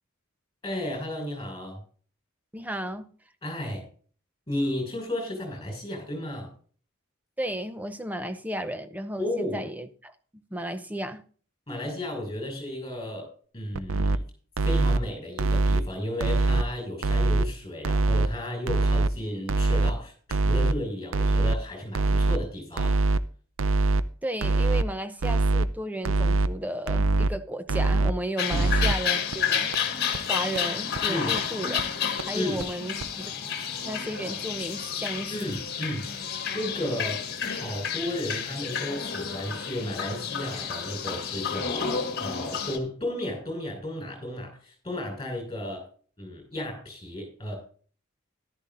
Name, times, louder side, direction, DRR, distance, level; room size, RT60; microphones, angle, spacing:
voice 1, 0.6-1.8 3.4-3.9 4.5-6.5 9.2-9.6 11.7-13.3 13.5-14.2 14.6-22.9 28.5-28.7 31.1-31.3 32.3-32.6 35.3-36.1 36.5-45.9 46.2-47.6, left 1 dB, 20° left, 5.6 m, -33 dB
voice 2, 2.5-3.1 7.4-11.2 24.2-29.7 30.3-31.8 32.3-33.3 33.9-35.5, right 1 dB, 5° right, 0.6 m, -34 dB
sound 1, 13.7-14.2 14.6-15.0 15.4-15.8 16.2-16.6 17.0-17.4 17.8-18.3 18.7-19.1 19.5-19.9 20.3-20.7 21.1-21.5 21.9-22.4 22.8-23.2 23.6-24.0 24.4-24.8 25.2-25.7 26.0-26.5 26.9-27.3 27.7-28.1 28.5-28.9 29.3-29.4 29.7-29.8 30.1-30.2 30.6-30.7 30.9-31.0 31.4-31.5 31.8-31.9 32.2-32.3 32.6-32.7 33.0-33.1, right 2 dB, 70° right, 0.6 m, -23 dB
sound 2, 28.4-42.8, left 7 dB, 50° left, 1.6 m, -31 dB
14.0 x 11.5 x 2.6 m
head